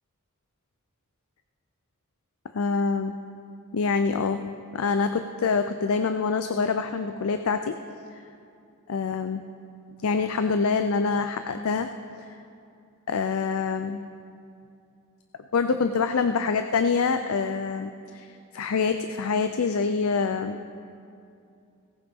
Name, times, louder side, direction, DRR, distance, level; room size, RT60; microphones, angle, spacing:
voice 1, 2.5-3.1 3.7-4.4 4.7-7.8 8.1-8.2 8.9-9.4 10.0-11.9 12.2-12.3 13.1-14.0 15.5-20.6, left 5 dB, 65° left, 8 dB, 0.5 m, -25 dB
18.0 x 15.5 x 3.6 m, 2.5 s
head